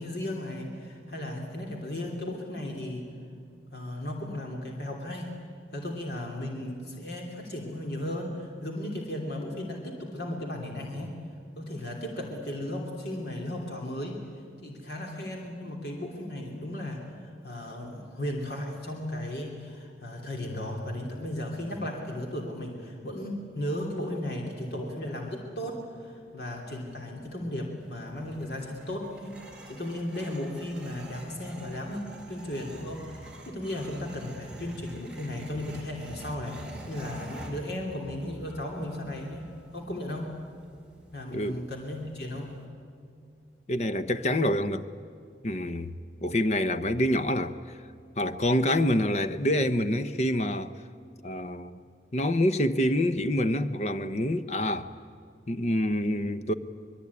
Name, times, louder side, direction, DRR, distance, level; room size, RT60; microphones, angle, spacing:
voice 1, 0.0-3.0 3.7-5.3 5.7-11.1 11.5-14.2 14.6-29.4 29.7-39.4 39.7-40.3 41.1-42.6, left 1 dB, 60° left, 3.0 m, -35 dB
sound 1, 27.8-42.6, right 1 dB, 5° right, 3.5 m, -47 dB
voice 2, 41.3-41.6 43.7-44.9 45.4-45.9 46.2-47.5 48.2-50.7 51.2-51.8 52.1-54.9 55.5-56.5, left 1 dB, 35° left, 0.8 m, -26 dB
24.0 x 22.0 x 9.7 m
head